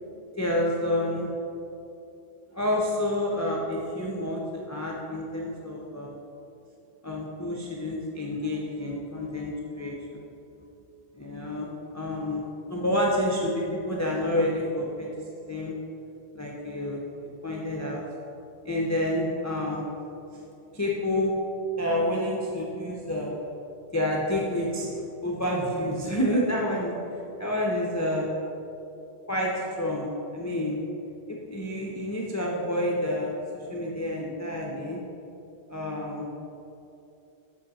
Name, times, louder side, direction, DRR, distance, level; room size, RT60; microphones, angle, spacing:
voice 1, 0.4-1.3 2.5-6.2 7.0-10.2 11.1-11.7 11.9-12.4 12.7-15.1 15.5-15.7 16.3-17.0 17.4-18.0 18.6-19.9 20.3-20.4 20.7-21.3 21.8-23.4 23.9-26.9 27.4-28.3 29.3-30.1 30.3-30.8 31.3-33.4 33.7-35.0 35.7-36.3, left 1 dB, 20° left, -3 dB, 0.5 m, -28 dB
7.9 x 4.4 x 4.1 m, 2.8 s
omnidirectional pair, 1.1 m